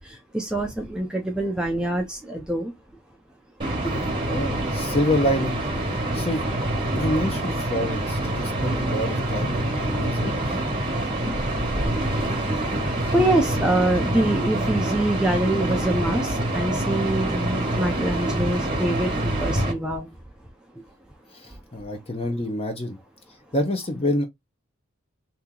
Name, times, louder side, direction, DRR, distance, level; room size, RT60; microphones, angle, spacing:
voice 1, 0.3-2.7 3.8-3.9 12.2-12.3 13.1-20.1, right 1 dB, 5° right, 0.5 m, -25 dB
sound 1, 3.6-19.7, right 1 dB, 25° right, 1.3 m, -26 dB
voice 2, 4.3-5.6 5.9-6.5 6.9-10.4 13.0-13.1 21.3-23.0 23.5-24.3, left 1 dB, 25° left, 0.8 m, -27 dB
2.9 x 2.8 x 3.7 m
head